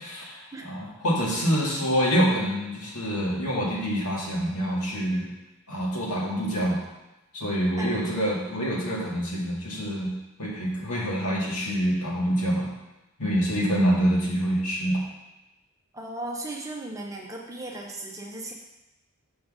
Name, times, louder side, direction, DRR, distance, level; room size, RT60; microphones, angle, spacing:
voice 1, 0.0-5.3 5.7-6.8 7.3-10.1 10.4-12.7 13.2-15.0, equal, 85° left, -4 dB, 2.0 m, -26 dB
voice 2, 15.9-18.5, right 2 dB, 15° right, -1 dB, 0.8 m, -36 dB
6.2 x 3.9 x 6.2 m, 1.0 s
head